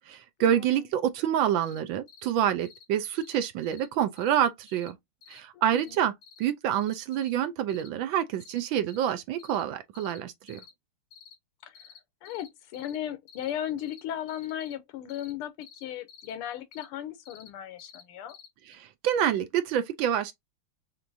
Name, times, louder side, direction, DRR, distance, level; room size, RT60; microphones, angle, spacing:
voice 1, 0.1-5.0 5.3-6.1 6.4-10.6 18.7-20.3, right 10 dB, 75° right, 1.2 m, -27 dB
sound 1, 1.6-1.8 2.1-2.3 2.6-2.8 3.1-3.4 3.6-3.9 4.2-4.4 4.7-4.9 5.2-5.4 5.7-6.0 6.2-6.4 6.7-7.3 7.7-7.9 8.4-8.6 8.9-9.1 9.4-9.6 9.9-10.2 10.5-10.7 11.1-11.3 11.7-12.0 12.2-12.5 12.7-13.0 13.3-13.5 13.8-14.0 14.3-14.7 15.1-15.3 15.6-16.3 16.7-16.9 17.2-17.5 17.8-18.0 18.3-18.5 18.7-18.8, left 7 dB, 50° left, 0.9 m, -51 dB
voice 2, 5.5-6.0 11.6-11.7 12.2-18.4, left 11 dB, 90° left, 1.6 m, -36 dB
5.9 x 2.5 x 2.6 m
omnidirectional pair, 2.4 m